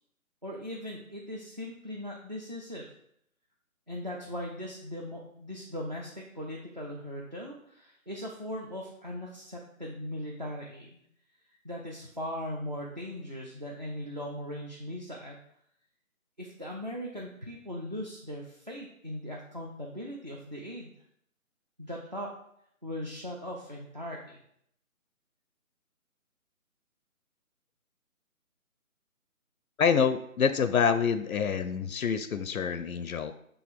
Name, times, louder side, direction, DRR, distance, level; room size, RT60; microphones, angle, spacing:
voice 1, 0.4-2.9 3.9-11.0 11.6-15.4 16.4-20.9 21.8-22.3 22.8-24.4, equal, 35° right, -1 dB, 0.4 m, -39 dB
voice 2, 29.8-33.3, left 6 dB, 75° left, 12 dB, 0.5 m, -26 dB
6.3 x 3.3 x 4.6 m, 0.71 s
figure-of-eight pair, 165°, 43 cm